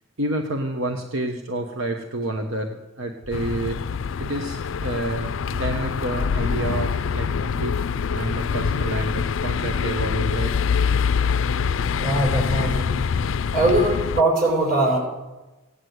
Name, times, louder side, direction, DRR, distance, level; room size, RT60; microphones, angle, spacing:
voice 1, 0.2-3.8 4.2-7.8 8.1-10.5 11.6-11.9, right 1 dB, 80° right, 4 dB, 1.2 m, -29 dB
sound 1, 3.3-14.2, left 6 dB, 70° left, 0.4 m, -25 dB
voice 2, 12.0-12.9 13.5-15.0, right 1 dB, 45° right, -1 dB, 6.3 m, -21 dB
16.5 x 9.9 x 8.0 m, 1.1 s
head